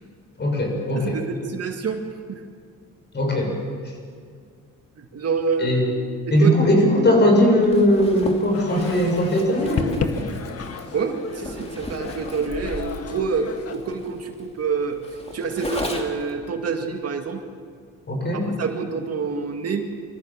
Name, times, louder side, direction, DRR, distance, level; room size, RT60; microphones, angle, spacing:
voice 1, 0.4-1.2 3.1-3.5 5.6-5.9 6.3-10.2 18.1-18.5, equal, 35° left, 1 dB, 7.0 m, -19 dB
voice 2, 0.9-2.4 5.0-5.7 6.3-6.5 10.9-15.0 15.3-17.4 18.3-19.9, right 5 dB, 55° right, 4 dB, 2.1 m, -27 dB
Zipper (clothing), 7.6-16.3, left 1 dB, 20° left, 2.8 m, -36 dB
sound 1, 8.5-13.7, left 5 dB, 50° left, 1.8 m, -32 dB
24.5 x 14.5 x 7.5 m, 2.1 s
cardioid pair, 90°, 30 cm